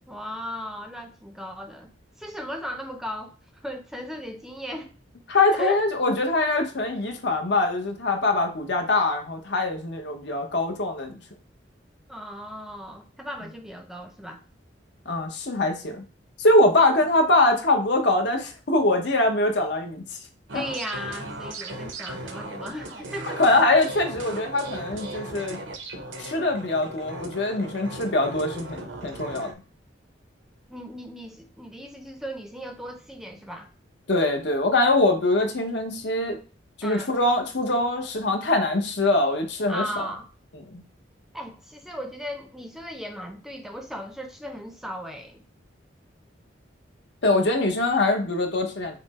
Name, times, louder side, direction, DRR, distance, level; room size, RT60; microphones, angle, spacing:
voice 1, 0.1-4.9 5.6-5.8 6.4-6.5 12.1-14.4 20.5-23.4 30.7-33.7 36.8-37.1 39.7-40.3 41.3-45.4, equal, ahead, 0.6 m, -36 dB
voice 2, 5.3-11.2 15.1-16.0 16.4-20.2 20.5-20.6 23.4-25.6 26.2-29.5 34.1-36.4 36.8-40.0 40.7-40.8 47.2-49.0, left 2 dB, 65° left, 0.9 m, -23 dB
sound 1, 20.5-29.5, right 2 dB, 80° right, 0.9 m, -37 dB
5.7 x 2.1 x 4.1 m
head